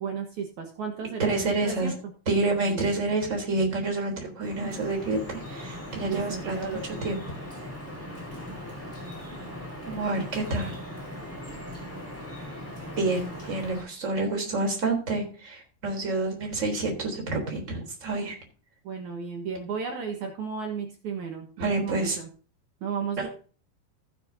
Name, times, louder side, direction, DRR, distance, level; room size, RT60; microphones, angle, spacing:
voice 1, 0.0-2.1 2.7-2.8 6.0-7.1 18.8-22.3 22.8-23.3, right 6 dB, 60° right, 3 dB, 2.2 m, -34 dB
voice 2, 1.2-1.9 2.3-7.2 9.9-10.8 13.0-18.3 21.6-22.2 23.2-23.3, right 2 dB, 20° right, 1 dB, 3.6 m, -28 dB
Drip, 4.4-13.8, left 1 dB, 5° left, 4.3 m, -39 dB
15.5 x 8.2 x 2.8 m, 0.40 s
omnidirectional pair, 4.7 m